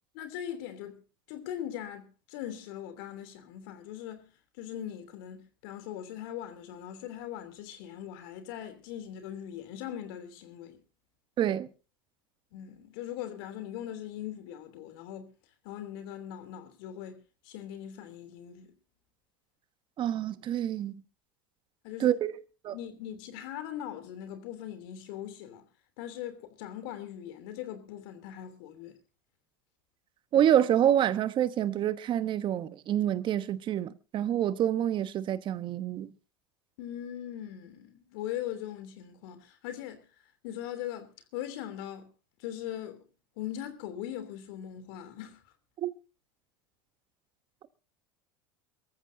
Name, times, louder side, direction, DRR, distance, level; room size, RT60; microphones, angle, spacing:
voice 1, 0.1-1.0 1.3-4.3 4.6-10.8 12.5-15.3 15.6-17.2 17.4-18.7 21.8-22.2 22.7-25.6 26.0-29.0 36.8-40.0 40.4-42.1 42.4-43.1 43.4-45.4, left 11 dB, 70° left, 3.1 m, -40 dB
voice 2, 11.4-11.7 20.0-21.0 22.0-22.3 22.6-22.7 30.3-36.1 45.8-45.9, right 10 dB, 40° right, 1.1 m, -27 dB
24.0 x 14.0 x 2.7 m
hypercardioid pair, 95°, 12 cm